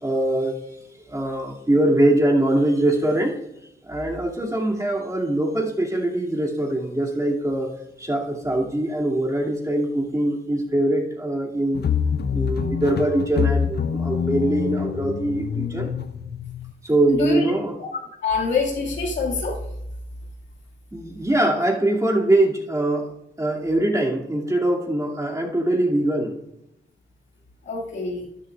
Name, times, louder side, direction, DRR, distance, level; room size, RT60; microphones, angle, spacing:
voice 1, 0.0-0.5 1.1-3.4 3.9-7.7 8.0-11.9 12.3-15.9 16.8-17.8 20.9-23.1 23.4-26.4, right 1 dB, 15° right, 2.6 m, -22 dB
sound 1, 11.7-16.7, left 7 dB, 60° left, 0.7 m, -25 dB
voice 2, 17.1-17.5 18.2-19.6 27.6-28.3, left 4 dB, 80° left, 2.3 m, -25 dB
13.0 x 10.0 x 2.5 m
cardioid pair, 55°, 19 cm